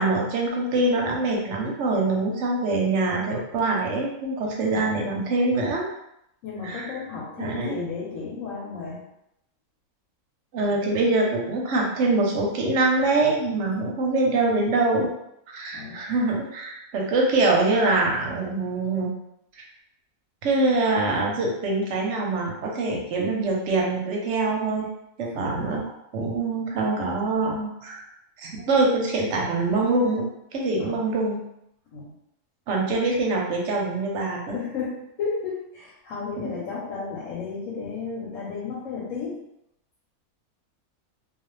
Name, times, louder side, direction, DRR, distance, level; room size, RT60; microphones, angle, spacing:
voice 1, 0.0-5.9 6.6-6.9 7.4-7.8 10.5-15.1 15.5-19.1 20.4-24.9 25.2-25.8 26.1-28.0 28.4-30.3 30.5-31.4 32.7-34.5 36.4-36.5, right 2 dB, 65° right, -1 dB, 0.9 m, -24 dB
voice 2, 6.4-9.0 13.7-13.9 15.7-16.0 25.3-25.6 30.8-31.0 31.9-32.1 34.4-39.4, left 5 dB, 70° left, -5 dB, 1.1 m, -33 dB
2.4 x 2.3 x 3.1 m, 0.80 s
omnidirectional pair, 1.5 m